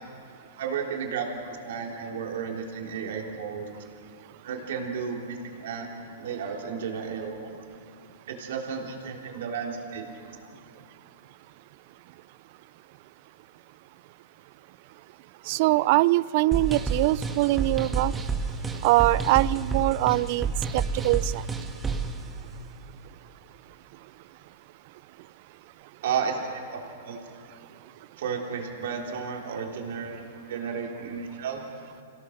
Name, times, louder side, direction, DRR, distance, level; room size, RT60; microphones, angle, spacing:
voice 1, 0.6-1.4 1.6-3.7 4.4-5.9 6.2-7.6 8.3-10.1 26.0-27.2 28.2-30.2 30.5-31.6, right 6 dB, 65° right, 1 dB, 3.7 m, -33 dB
voice 2, 15.5-18.1 18.8-20.5 20.7-21.4, right 19 dB, 50° right, 21 dB, 0.4 m, -23 dB
sound 1, 16.5-22.2, right 4 dB, 15° right, 1.6 m, -29 dB
26.0 x 17.5 x 6.6 m, 2.5 s
hypercardioid pair, 130°, 0 cm